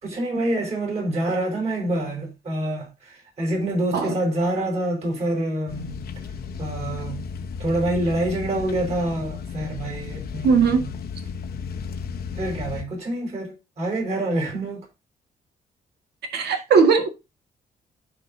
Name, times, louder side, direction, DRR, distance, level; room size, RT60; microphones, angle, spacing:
voice 1, 0.0-6.0 6.6-7.2 7.6-10.9 12.3-14.8, right 1 dB, 40° right, 4.9 m, -26 dB
sound 1, 5.7-12.8, left 6 dB, 70° left, 1.2 m, -34 dB
voice 2, 10.4-10.8 16.3-17.1, right 5 dB, 75° right, 1.9 m, -18 dB
15.0 x 4.9 x 2.8 m
cardioid pair, 130°, 17 cm